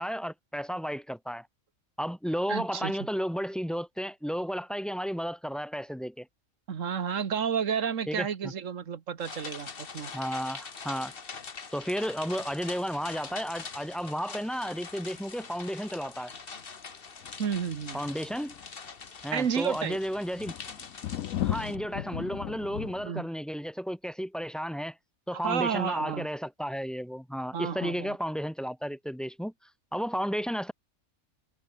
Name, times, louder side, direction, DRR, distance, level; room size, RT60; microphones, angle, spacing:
voice 1, 0.0-1.5 2.0-6.3 8.1-8.5 10.1-11.1 11.7-16.3 17.9-18.5 19.2-20.5 21.4-25.0 25.3-29.5 29.9-30.7, equal, ahead, 1.3 m, -33 dB
voice 2, 2.5-2.9 6.7-9.7 9.9-10.1 17.4-18.0 19.3-20.0 23.0-23.3 25.4-26.3 27.5-28.2, right 7 dB, 70° right, 1.7 m, -31 dB
sound 1, 9.2-21.8, left 5 dB, 45° left, 1.6 m, -44 dB
sound 2, 11.8-12.7 13.1-14.1 14.4-14.5 14.9-15.2 15.6-15.9 16.6-16.8 17.2-23.1, left 12 dB, 90° left, 1.1 m, -38 dB
omnidirectional pair, 1.4 m